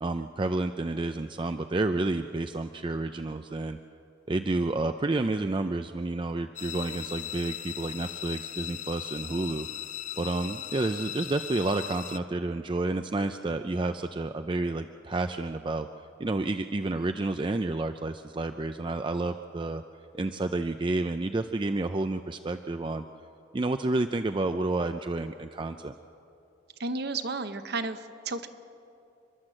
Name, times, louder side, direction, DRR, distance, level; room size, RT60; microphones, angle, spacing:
voice 1, 0.0-3.8 4.3-9.7 10.2-15.9 16.2-19.8 20.1-23.0 23.5-25.9, right 2 dB, 25° right, 8 dB, 0.4 m, -30 dB
sound 1, 6.6-12.2, left 11 dB, 35° left, 0.4 m, -38 dB
voice 2, 26.8-28.5, right 3 dB, 55° right, 9 dB, 1.0 m, -32 dB
29.5 x 11.5 x 7.7 m, 2.7 s
head